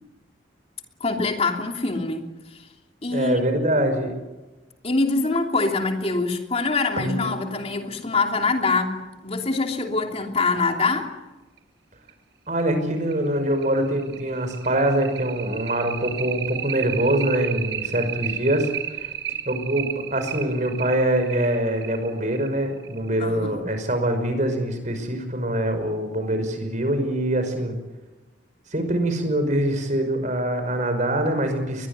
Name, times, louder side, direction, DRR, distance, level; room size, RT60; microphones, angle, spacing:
voice 1, 1.0-2.6 3.0-3.4 4.8-11.1 23.2-23.6, left 3 dB, 30° left, 3 dB, 3.1 m, -24 dB
voice 2, 3.1-4.1 12.5-19.1 19.5-27.8 28.7-31.9, right 1 dB, 40° right, 8 dB, 5.5 m, -24 dB
sound 1, 7.0-10.1 11.6-11.7 12.1-12.2 12.6-12.7 13.1-23.2, right 7 dB, 70° right, 3.5 m, -33 dB
22.5 x 21.5 x 9.8 m, 1.1 s
head